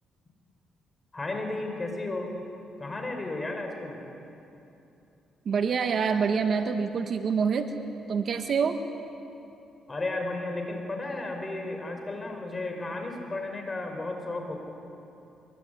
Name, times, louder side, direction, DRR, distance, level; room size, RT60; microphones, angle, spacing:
voice 1, 1.1-2.4 2.8-4.0 9.9-14.6, left 2 dB, 25° left, 3 dB, 5.8 m, -33 dB
voice 2, 5.4-7.7 8.1-8.8, right 6 dB, 55° right, 7 dB, 1.7 m, -26 dB
24.5 x 23.5 x 9.8 m, 2.8 s
cardioid pair, 90°, 0 cm